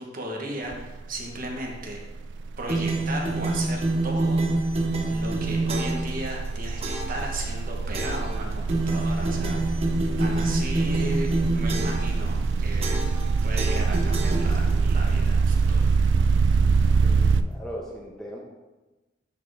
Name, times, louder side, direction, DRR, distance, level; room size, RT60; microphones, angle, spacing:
voice 1, 0.0-2.0 2.6-4.4 5.1-9.8 10.2-13.0 13.4-15.9, right 1 dB, 50° right, 0 dB, 1.2 m, -35 dB
sound 1, 0.7-1.0 1.3-17.4, right 4 dB, 70° right, 0.3 m, -25 dB
sound 2, 2.7-6.1 6.8-7.2 7.9-8.3 8.7-12.1 12.8-13.3 13.6-14.9, right 2 dB, 35° right, 0.9 m, -27 dB
voice 2, 17.0-18.4, equal, 5° left, -4 dB, 0.9 m, -38 dB
9.7 x 4.4 x 3.4 m, 1.1 s
head